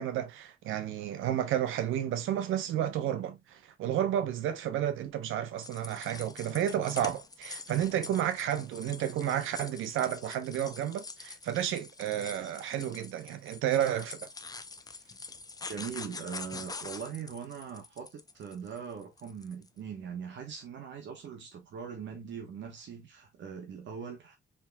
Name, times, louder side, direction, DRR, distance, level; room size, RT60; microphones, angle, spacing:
voice 1, 0.0-14.3, right 10 dB, 85° right, 0.8 m, -31 dB
sound 1, 5.6-19.7, left 3 dB, 20° left, 0.5 m, -45 dB
voice 2, 15.7-24.4, right 7 dB, 65° right, 1.1 m, -41 dB
4.4 x 3.6 x 2.3 m
cardioid pair, 90°, 20 cm